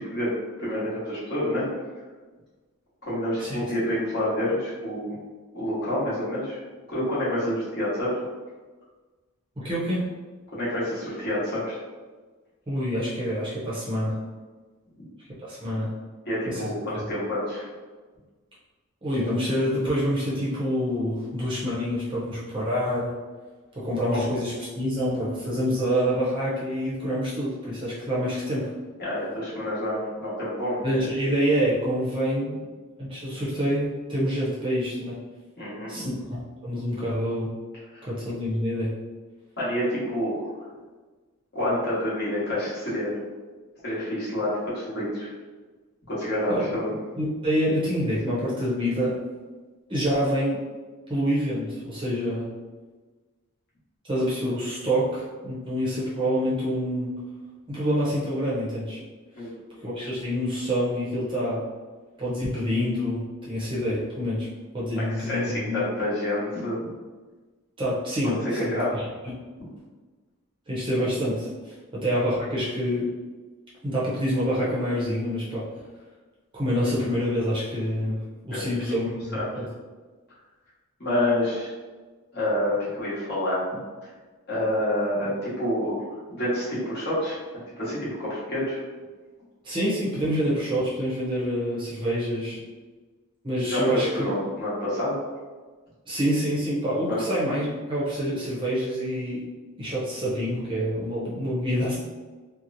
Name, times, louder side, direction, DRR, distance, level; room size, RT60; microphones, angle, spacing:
voice 1, 0.0-1.7 3.1-5.2 5.5-6.6 6.9-8.2 10.5-11.8 16.2-17.7 29.0-30.8 35.6-36.1 37.9-38.1 39.6-40.5 41.5-43.2 43.8-45.3 46.1-46.9 59.4-59.7 64.9-66.9 68.5-68.9 78.5-78.7 79.1-79.5 81.0-81.7 82.3-83.7 84.5-88.8 93.6-95.2 97.1-97.2, left 1 dB, 45° left, -9 dB, 1.1 m, -28 dB
voice 2, 9.6-10.1 12.7-14.2 15.4-15.9 16.5-16.7 16.9-17.0 19.0-23.1 23.7-28.7 30.8-32.6 33.0-35.2 35.9-37.5 38.1-38.9 46.5-46.6 47.2-49.2 49.9-50.6 51.1-52.5 54.1-57.1 57.7-59.0 59.4-59.5 59.8-61.6 62.2-64.5 64.7-65.8 67.8-69.1 70.7-73.1 73.8-75.6 76.5-79.7 89.6-92.6 93.4-94.3 96.1-99.4 99.8-102.0, equal, 25° right, -8 dB, 0.6 m, -27 dB
2.9 x 2.0 x 2.5 m, 1.3 s
head